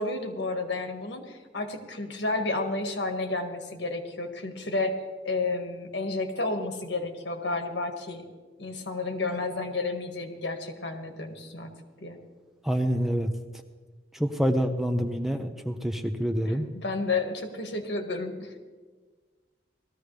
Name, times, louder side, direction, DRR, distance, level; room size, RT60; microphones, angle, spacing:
voice 1, 0.0-4.9 5.3-8.2 8.6-11.7 12.0-12.2 16.4-18.5, left 3 dB, 70° left, 5 dB, 1.7 m, -31 dB
voice 2, 12.6-13.3 14.1-16.7, equal, ahead, 6 dB, 0.6 m, -27 dB
19.0 x 14.0 x 3.3 m, 1.4 s
head